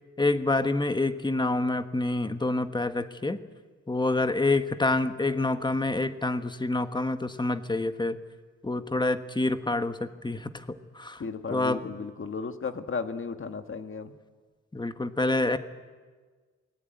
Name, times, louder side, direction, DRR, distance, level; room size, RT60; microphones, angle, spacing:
voice 1, 0.2-3.4 3.9-8.2 8.6-10.6 10.9-11.2 11.5-11.8 14.7-15.6, left 2 dB, 15° left, 9 dB, 1.2 m, -27 dB
voice 2, 11.2-14.1, left 5 dB, 45° left, 8 dB, 1.6 m, -34 dB
28.0 x 20.5 x 9.2 m, 1.5 s
wide cardioid pair, 145°, 29 cm